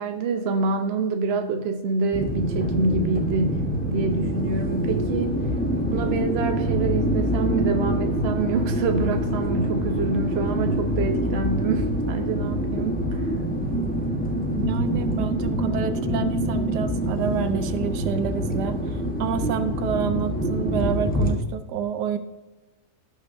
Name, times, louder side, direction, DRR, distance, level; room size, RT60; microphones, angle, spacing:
voice 1, 0.0-5.4 5.9-13.3, right 4 dB, 50° right, 5 dB, 0.8 m, -26 dB
sound 1, 2.1-21.4, equal, 5° left, 0.9 m, -25 dB
voice 2, 14.5-22.2, right 8 dB, 85° right, 10 dB, 1.3 m, -28 dB
17.0 x 6.4 x 2.7 m, 1.1 s
omnidirectional pair, 1.7 m